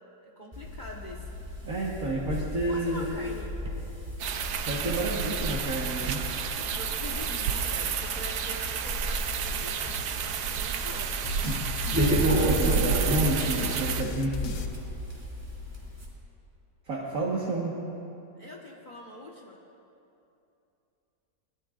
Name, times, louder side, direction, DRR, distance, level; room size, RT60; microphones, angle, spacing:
voice 1, 0.2-1.4 2.7-3.5 6.3-11.1 18.4-19.6, equal, 30° left, -2 dB, 1.4 m, -44 dB
sound 1, 0.5-16.1, equal, 10° right, 2.9 m, -34 dB
voice 2, 1.6-3.1 4.7-6.3 11.5-11.6 11.9-12.1 12.4-14.6 16.9-17.8, right 1 dB, 55° right, -5 dB, 1.9 m, -30 dB
sound 2, 4.2-14.0, right 7 dB, 75° right, 1.3 m, -30 dB
sound 3, 11.2-15.5, left 4 dB, 80° left, 1.5 m, -37 dB
24.5 x 20.0 x 2.5 m, 2.8 s
omnidirectional pair, 1.8 m